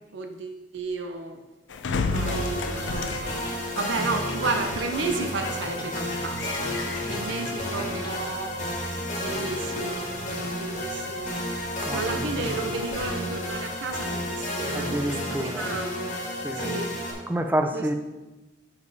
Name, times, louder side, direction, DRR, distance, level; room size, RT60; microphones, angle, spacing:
voice 1, 0.1-1.4 2.1-8.6 9.2-10.1 10.5-16.1 16.5-17.0 17.7-17.9, right 3 dB, 80° right, 5 dB, 0.6 m, -33 dB
sound 1, 1.7-14.5, left 4 dB, 80° left, 0.5 m, -37 dB
sound 2, 2.1-17.1, left 1 dB, 40° left, 1.6 m, -31 dB
sound 3, 3.0-8.5, left 3 dB, 25° left, 0.8 m, -40 dB
voice 2, 14.7-15.6 16.4-16.8 17.3-17.9, right 1 dB, 10° right, 6 dB, 0.4 m, -28 dB
7.1 x 5.2 x 4.0 m, 1.1 s
head